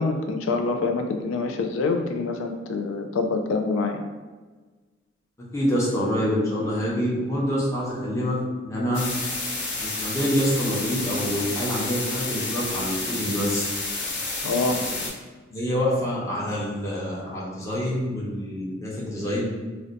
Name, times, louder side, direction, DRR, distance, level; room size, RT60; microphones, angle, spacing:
voice 1, 0.0-4.0 14.4-14.8, left 3 dB, 85° left, 5 dB, 0.3 m, -25 dB
voice 2, 5.5-8.4 8.6-9.0 9.8-13.7 15.5-19.5, equal, 15° left, -6 dB, 0.7 m, -26 dB
sound 1, 8.9-15.1, left 2 dB, 65° left, 0.7 m, -30 dB
2.5 x 2.1 x 3.8 m, 1.3 s
head